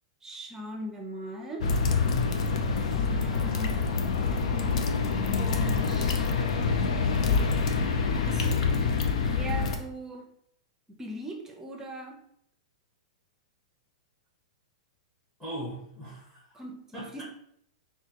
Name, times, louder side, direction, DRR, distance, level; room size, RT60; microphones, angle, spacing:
voice 1, 0.2-1.7 3.1-3.8 5.4-6.3 8.3-8.6 9.2-10.3 10.9-12.2 16.5-17.2, right 1 dB, 15° right, 2 dB, 0.6 m, -39 dB
sound 1, 1.6-9.8, left 5 dB, 70° left, 0.5 m, -26 dB
voice 2, 15.4-16.6 16.9-17.2, right 1 dB, 10° left, -6 dB, 1.2 m, -39 dB
5.9 x 2.3 x 2.9 m, 0.70 s
hypercardioid pair, 135°, 4 cm